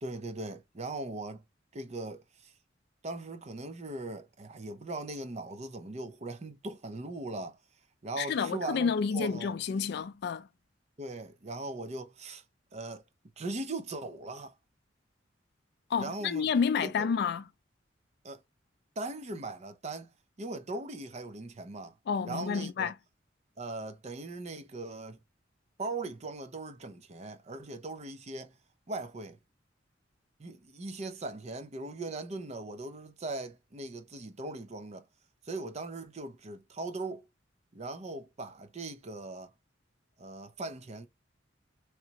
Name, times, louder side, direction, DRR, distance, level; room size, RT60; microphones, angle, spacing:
voice 1, 0.0-1.4 1.7-2.5 3.0-7.6 8.0-9.5 11.0-12.4 12.7-13.0 13.4-14.5 16.0-16.5 16.8-17.1 18.2-18.4 19.0-22.0 22.2-22.9 23.6-25.2 25.8-28.6 28.9-29.4 30.4-35.0 35.4-37.2 37.7-39.5 40.2-41.1, right 2 dB, 35° right, 0.5 m, -39 dB
voice 2, 8.2-10.5 15.9-17.4 22.1-22.9, left 6 dB, 60° left, 0.3 m, -30 dB
3.3 x 2.9 x 2.8 m
head